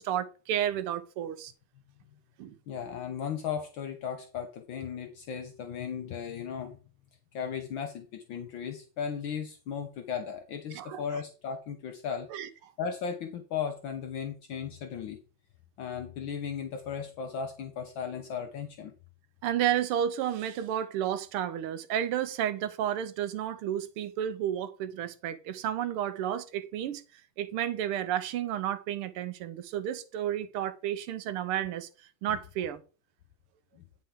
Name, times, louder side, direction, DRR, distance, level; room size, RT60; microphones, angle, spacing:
voice 1, 0.0-1.5 2.4-2.5 10.7-11.0 12.3-12.5 19.4-32.8, right 10 dB, 90° right, 1.6 m, -32 dB
voice 2, 2.7-6.8 7.3-12.3 12.8-15.2 15.8-18.9 32.3-32.4, left 7 dB, 65° left, 1.5 m, -36 dB
9.7 x 5.6 x 3.7 m
omnidirectional pair, 2.4 m